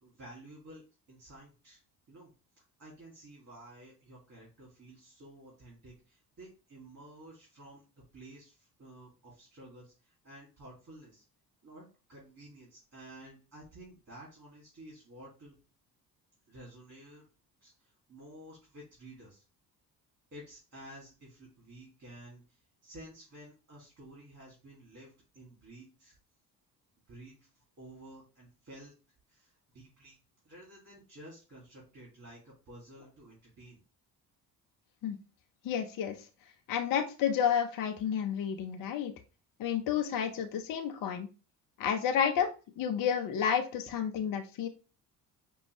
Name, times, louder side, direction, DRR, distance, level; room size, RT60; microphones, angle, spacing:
voice 1, 0.0-1.8 2.1-2.3 2.6-7.8 8.1-11.2 11.6-15.6 16.5-17.3 17.6-19.4 20.3-26.2 27.1-28.9 29.3-30.2 30.4-33.8, right 1 dB, 35° right, -5 dB, 2.3 m, -52 dB
voice 2, 35.6-36.2 36.7-39.1 39.6-41.3 41.8-42.5 42.8-44.7, left 8 dB, 45° left, 6 dB, 0.7 m, -30 dB
5.1 x 2.3 x 3.0 m, 0.33 s
hypercardioid pair, 50°, 49 cm